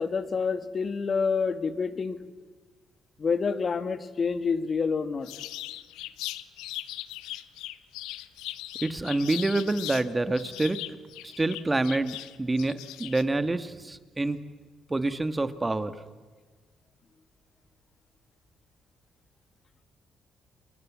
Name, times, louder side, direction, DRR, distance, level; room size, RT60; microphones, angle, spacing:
voice 1, 0.0-2.2 3.2-5.3, left 5 dB, 45° left, 12 dB, 2.0 m, -28 dB
sound 1, 5.3-10.1 10.4-13.2, left 15 dB, 85° left, 0.9 m, -39 dB
voice 2, 8.8-10.8 11.2-14.4 14.9-15.9, right 2 dB, 20° right, 12 dB, 1.8 m, -27 dB
29.5 x 22.0 x 7.5 m, 1.4 s
supercardioid pair, 65°, 0 cm